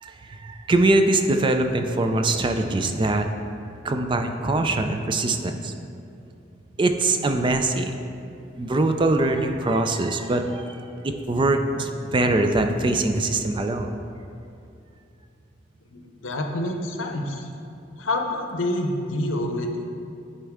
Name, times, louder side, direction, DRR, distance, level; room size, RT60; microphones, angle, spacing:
voice 1, 0.0-3.3 3.8-5.7 6.8-7.9 8.6-13.9, right 2 dB, 25° right, 6 dB, 0.3 m, -23 dB
voice 2, 15.9-17.5 18.0-19.8, left 1 dB, 80° left, 3 dB, 0.7 m, -27 dB
10.0 x 4.3 x 3.6 m, 2.6 s
head